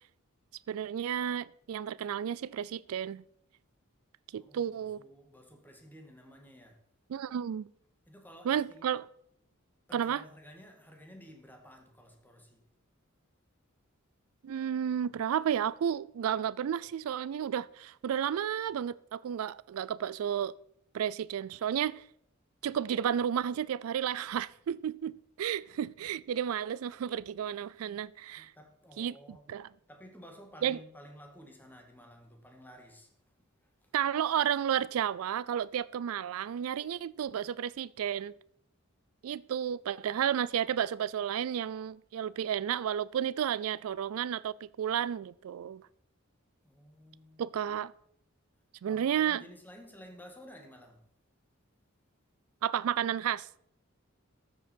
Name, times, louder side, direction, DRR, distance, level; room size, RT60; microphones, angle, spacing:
voice 1, 0.7-3.2 4.3-5.0 7.1-7.7 8.4-9.1 9.9-10.2 14.4-20.5 20.9-22.0 22.6-28.5 29.0-29.1 29.5-29.7 30.6-30.8 33.9-38.3 39.2-45.9 47.4-47.9 48.8-49.4 52.6-53.5, right 9 dB, 85° right, 0.3 m, -32 dB
voice 2, 4.3-6.8 8.1-8.9 9.9-12.6 27.5-27.6 28.3-29.5 29.9-33.1 33.6-33.9 46.6-47.4 48.9-51.0, equal, 10° left, 1.8 m, -53 dB
13.5 x 7.5 x 4.4 m
head